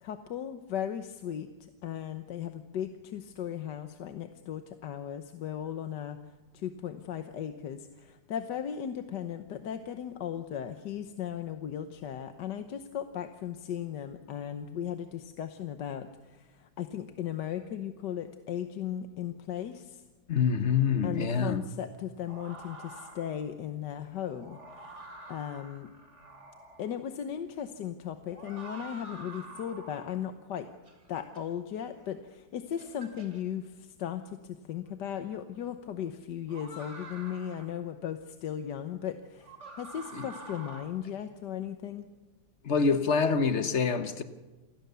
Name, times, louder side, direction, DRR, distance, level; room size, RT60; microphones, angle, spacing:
voice 1, 0.0-6.2 6.5-20.0 21.0-25.9 26.8-30.7 31.1-42.1, left 9 dB, 70° left, 1.6 m, -37 dB
voice 2, 20.3-21.6 40.1-40.3 42.6-44.2, left 5 dB, 45° left, 1.2 m, -26 dB
sound 1, 22.3-23.5 24.2-27.0 28.3-30.2 30.9-31.4 32.2-32.3 32.8-33.4 34.9-35.0 36.5-37.8 39.4-40.8, right 2 dB, 40° right, 3.0 m, -47 dB
28.0 x 20.0 x 6.9 m
omnidirectional pair, 2.0 m